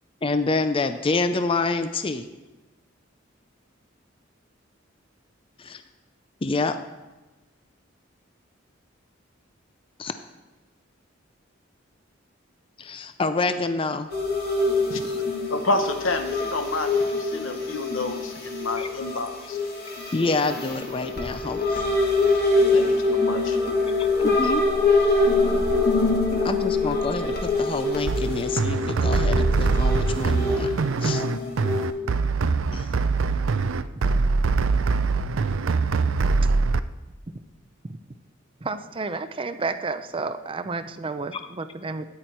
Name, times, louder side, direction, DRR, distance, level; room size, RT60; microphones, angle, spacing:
voice 1, 0.2-2.3 5.6-5.8 6.4-6.8 10.0-10.2 12.8-14.1 15.0-15.2 18.8-18.9 20.1-21.8 24.2-24.6 26.4-30.7 31.0-31.2 32.7-32.9 41.3-41.4, left 3 dB, 25° left, 9 dB, 0.5 m, -27 dB
scaryscape voxuffering, 14.1-31.9, left 3 dB, 50° left, 2.5 m, -24 dB
voice 2, 15.5-19.6 22.7-23.6, left 2 dB, 80° left, 7 dB, 1.3 m, -29 dB
sound 1, 28.1-36.8, right 4 dB, 80° right, 0.5 m, -23 dB
voice 3, 38.6-42.0, right 3 dB, 25° right, 10 dB, 0.5 m, -32 dB
13.5 x 9.6 x 4.4 m, 1.2 s
head